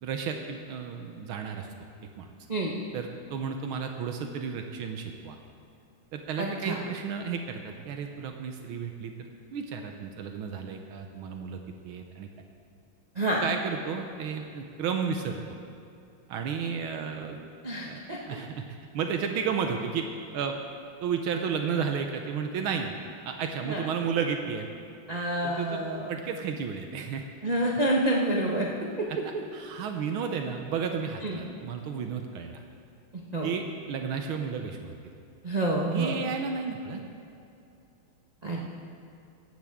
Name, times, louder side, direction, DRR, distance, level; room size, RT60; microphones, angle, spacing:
voice 1, 0.0-1.7 2.2-2.3 2.9-5.4 6.1-12.3 13.4-15.4 16.3-17.4 17.8-18.0 18.3-18.6 18.9-20.1 20.3-20.6 21.0-22.9 23.2-24.7 25.4-27.2 29.5-32.6 33.4-35.1 35.9-37.0, right 6 dB, 80° right, 4 dB, 1.7 m, -32 dB
voice 2, 6.4-6.8 13.1-13.4 17.6-18.4 23.6-23.8 25.1-26.1 27.4-28.7 29.0-29.1 31.2-31.4 33.3-33.5 35.4-36.2 38.4-38.6, right 1 dB, 30° right, -3 dB, 0.8 m, -28 dB
16.0 x 12.5 x 3.6 m, 2.6 s
omnidirectional pair, 2.3 m